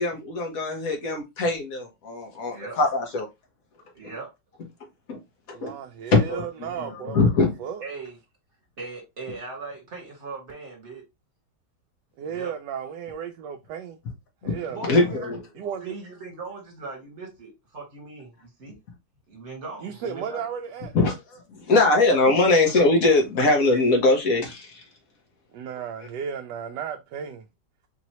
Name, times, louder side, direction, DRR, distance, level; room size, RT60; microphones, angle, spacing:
voice 1, 0.0-3.3 5.1-5.2 5.5-5.7 6.1-6.4 6.8-7.5 14.4-14.5 14.9-15.4 20.9-21.1 21.5-24.8, left 3 dB, 55° left, 1.6 m, -21 dB
voice 2, 3.9-4.3 7.8-8.2 8.8-11.0 12.2-12.6 14.7-15.3 15.8-18.8 19.3-20.5, right 3 dB, 40° right, 2.1 m, -39 dB
voice 3, 5.5-7.3 7.6-7.8 12.2-14.0 14.4-15.1 15.6-16.0 19.8-20.9 25.5-27.4, right 7 dB, 80° right, 1.2 m, -34 dB
4.5 x 2.8 x 3.0 m
omnidirectional pair, 1.9 m